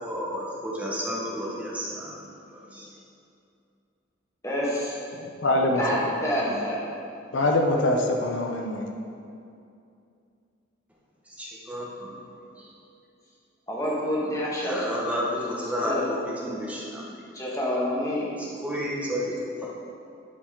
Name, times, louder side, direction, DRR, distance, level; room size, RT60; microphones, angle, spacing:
voice 1, 0.0-2.2 2.5-2.9 11.4-12.2 12.6-12.7 14.6-17.2 18.6-19.7, equal, 5° right, -5 dB, 0.9 m, -31 dB
voice 2, 4.4-4.9 5.8-6.8 13.7-14.9 15.4-15.5 15.8-16.1 17.3-18.3, equal, 15° left, -5 dB, 1.4 m, -28 dB
voice 3, 5.1-6.0 6.4-6.6 7.3-8.8, left 1 dB, 75° left, 2 dB, 0.7 m, -24 dB
11.0 x 5.0 x 3.7 m, 2.5 s
head